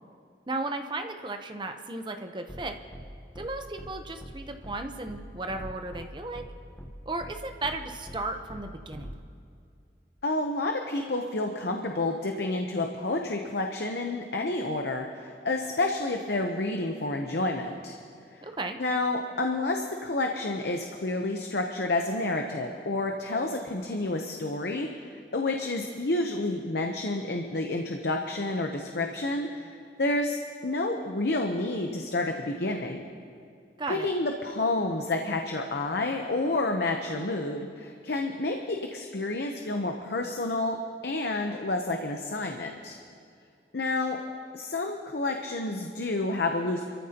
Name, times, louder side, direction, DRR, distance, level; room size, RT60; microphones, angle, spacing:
voice 1, 0.5-2.8 3.4-6.4 7.1-9.1 18.4-18.8 33.8-34.1, right 2 dB, 25° right, 5 dB, 0.8 m, -35 dB
sound 1, 2.5-2.6 2.9-3.0 3.3-3.5 3.8-3.9 4.2-4.3 4.6-4.8 5.1-5.2 5.5-6.0 6.3-6.5 6.8-6.9 7.2-7.3 7.6-7.8 8.1-8.2 8.5-8.6 8.9-9.1, equal, 10° left, 1.1 m, -42 dB
voice 2, 10.2-18.0 18.3-18.4 18.8-33.0 33.9-40.8 41.0-43.0 43.7-44.2 44.5-46.9, left 2 dB, 70° left, 3 dB, 0.8 m, -29 dB
27.0 x 14.0 x 2.9 m, 2.4 s
head